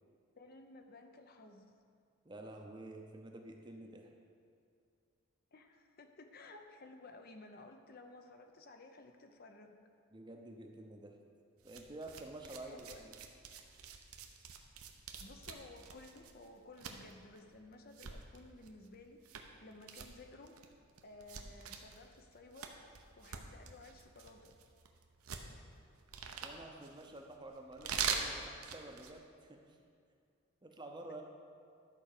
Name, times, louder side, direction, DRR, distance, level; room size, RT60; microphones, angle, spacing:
voice 1, 0.4-1.7 5.5-9.8 12.6-13.1 15.2-20.5 21.0-22.8 23.2-24.5, left 2 dB, 45° left, 5 dB, 0.6 m, -55 dB
voice 2, 2.2-4.1 10.1-11.2 11.6-13.1 26.4-29.8 30.6-31.2, right 2 dB, 20° right, 3 dB, 0.7 m, -50 dB
sound 1, 11.6-29.2, right 6 dB, 80° right, 0.8 m, -45 dB
11.5 x 4.8 x 6.6 m, 2.4 s
head